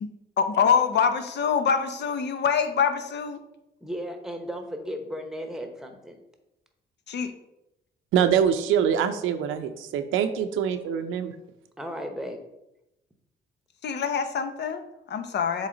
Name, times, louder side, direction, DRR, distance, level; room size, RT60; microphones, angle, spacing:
voice 1, 0.4-3.4 7.1-7.3 13.8-15.7, left 6 dB, 60° left, 8 dB, 0.8 m, -25 dB
voice 2, 3.8-6.2 11.8-12.4, equal, ahead, 5 dB, 1.1 m, -35 dB
voice 3, 8.1-11.3, right 8 dB, 90° right, 9 dB, 0.7 m, -24 dB
7.3 x 3.9 x 3.9 m, 0.88 s
cardioid pair, 90°, 20 cm